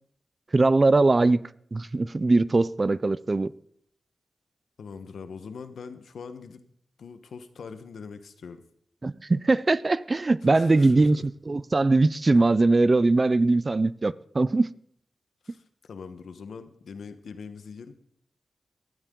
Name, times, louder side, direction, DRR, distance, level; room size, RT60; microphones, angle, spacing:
voice 1, 0.5-3.5 9.0-11.2 11.5-14.7, right 3 dB, 30° right, 0.5 m, -21 dB
voice 2, 4.8-6.6 7.0-8.6 10.4-11.2 15.4-17.9, left 5 dB, 85° left, 1.2 m, -42 dB
18.0 x 13.0 x 3.8 m
wide cardioid pair, 100°, 0 cm